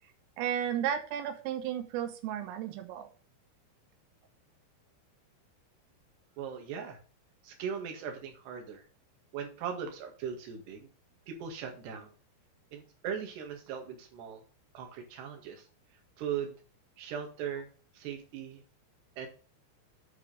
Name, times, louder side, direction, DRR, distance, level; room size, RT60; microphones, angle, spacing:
voice 1, 0.4-3.1, right 9 dB, 90° right, 7 dB, 3.7 m, -33 dB
voice 2, 6.4-7.0 7.4-8.8 9.3-10.9 11.3-12.1 12.7-14.4 14.7-15.7 16.2-16.6 17.0-17.7 18.0-18.6 19.2-19.3, right 7 dB, 60° right, 3 dB, 3.6 m, -39 dB
8.3 x 4.8 x 6.7 m, 0.38 s
omnidirectional pair, 5.7 m